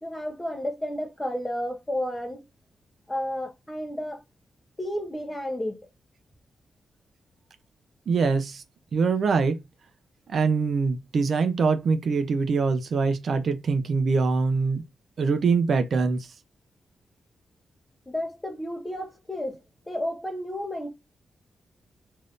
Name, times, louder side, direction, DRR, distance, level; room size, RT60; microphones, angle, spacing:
voice 1, 0.0-2.4 3.1-4.2 4.8-5.8 18.1-19.6 19.9-20.9, left 1 dB, 10° left, 0.7 m, -31 dB
voice 2, 8.1-8.6 8.9-9.6 10.3-14.8 15.2-16.3, right 4 dB, 55° right, 0.4 m, -23 dB
2.6 x 2.5 x 3.4 m
wide cardioid pair, 170°, 0 cm